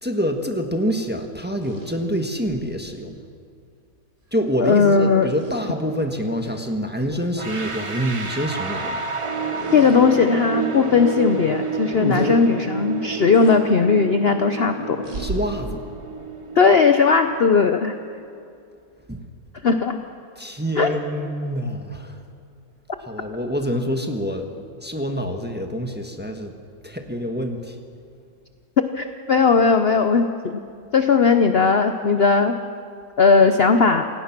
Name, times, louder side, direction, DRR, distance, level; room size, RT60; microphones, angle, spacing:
voice 1, 0.0-3.2 4.3-9.0 11.9-12.4 15.2-15.8 19.1-19.2 20.4-22.2 23.0-24.5 24.8-26.5 26.8-27.7, equal, 5° right, 4 dB, 1.1 m, -26 dB
sound 1, 1.5-2.6 4.3-4.5 5.3-5.6 6.4-6.6 7.0-7.2 9.6-10.0 10.6-10.7 12.1-12.3 13.3-13.6 15.0-15.4, right 2 dB, 45° right, 3.8 m, -36 dB
voice 2, 4.6-5.3 9.7-15.0 16.6-18.0 19.6-20.0 20.8-20.9 28.9-30.6 30.9-32.6 33.2-34.1, left 5 dB, 60° left, 7 dB, 0.6 m, -17 dB
sound 2, 7.4-18.2, right 4 dB, 30° right, 0.5 m, -30 dB
27.5 x 17.0 x 6.0 m, 2.4 s
omnidirectional pair, 2.1 m